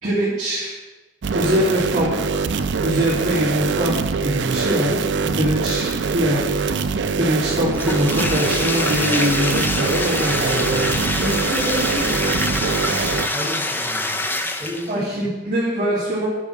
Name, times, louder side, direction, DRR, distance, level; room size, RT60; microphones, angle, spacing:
voice 1, 0.0-0.7 1.3-2.4 2.8-6.7 7.2-10.9 14.9-16.3, equal, 45° right, -11 dB, 2.8 m, -23 dB
sound 1, 1.2-13.3, right 5 dB, 80° right, 0.5 m, -23 dB
Bathtub (filling or washing), 7.7-15.0, left 2 dB, 10° left, 0.6 m, -25 dB
voice 2, 11.2-14.2 14.6-15.2, equal, 10° right, -10 dB, 2.5 m, -30 dB
8.5 x 5.8 x 6.2 m, 1.2 s
head